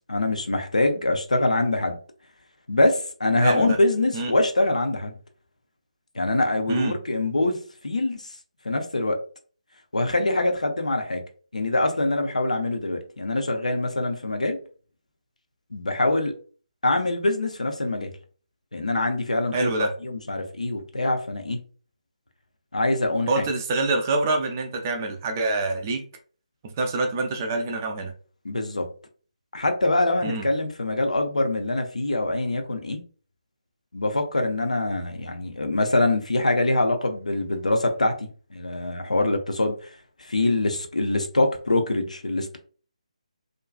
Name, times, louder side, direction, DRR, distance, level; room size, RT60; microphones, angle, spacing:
voice 1, 0.1-2.0 2.7-5.1 6.1-8.4 8.6-9.2 9.9-11.2 11.5-14.6 15.7-16.4 16.8-18.1 18.7-21.6 22.7-23.4 28.4-28.9 29.5-33.0 33.9-42.6, left 2 dB, 70° left, 5 dB, 0.5 m, -24 dB
voice 2, 3.4-3.8 4.1-4.3 6.7-6.9 19.5-19.9 23.3-26.0 26.6-28.1 30.2-30.4, right 2 dB, 20° right, 3 dB, 0.3 m, -26 dB
2.5 x 2.2 x 2.4 m, 0.40 s
figure-of-eight pair, 150°, 4 cm